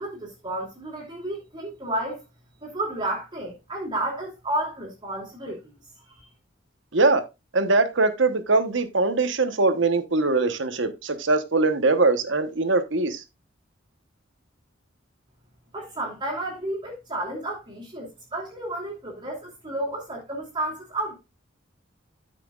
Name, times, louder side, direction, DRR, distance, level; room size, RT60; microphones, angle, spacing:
voice 1, 0.0-2.2 2.6-5.6 6.1-6.3 15.7-21.1, right 1 dB, 25° right, 2.9 m, -31 dB
voice 2, 6.9-7.2 7.5-13.2, right 3 dB, 70° right, 1.2 m, -22 dB
13.5 x 6.0 x 2.4 m
head